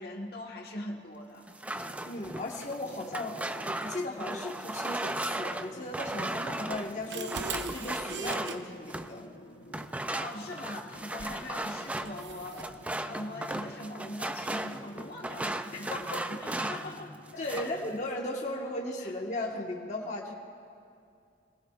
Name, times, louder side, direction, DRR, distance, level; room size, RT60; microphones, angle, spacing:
voice 1, 0.0-1.5 9.9-12.8 13.1-16.1 16.4-17.7 19.0-19.1, left 1 dB, 60° left, 0 dB, 1.5 m, -41 dB
sound 1, 1.5-9.2 9.7-17.0 17.3-17.8, right 1 dB, 10° right, 0.4 m, -36 dB
sound 2, 1.7-18.0, equal, 90° left, 1.0 m, -50 dB
voice 2, 2.0-7.4 7.7-9.3 15.9-16.2 17.4-20.3, left 1 dB, 40° left, -2 dB, 1.4 m, -36 dB
sound 3, 6.7-8.6 11.2-11.4 12.0-12.7, right 4 dB, 85° right, 0.8 m, -39 dB
25.0 x 19.5 x 2.4 m, 2.4 s
head